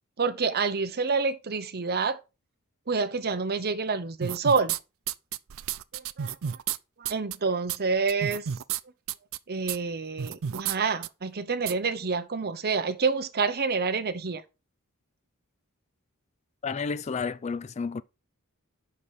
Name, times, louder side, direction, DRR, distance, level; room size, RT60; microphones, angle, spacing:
voice 1, 0.2-2.2 2.9-4.7 5.9-6.3 7.0-8.4 9.5-14.4, right 4 dB, 45° right, 0.9 m, -28 dB
sound 1, 4.2-4.8 5.1-6.8 7.0-7.3 7.7-7.8 8.1-8.8 9.1-9.4 9.7-9.8 10.2-10.8 11.0-11.1 11.7-11.8, right 9 dB, 65° right, 0.5 m, -31 dB
voice 2, 16.6-18.0, left 5 dB, 30° left, 0.4 m, -31 dB
7.1 x 5.7 x 4.9 m
head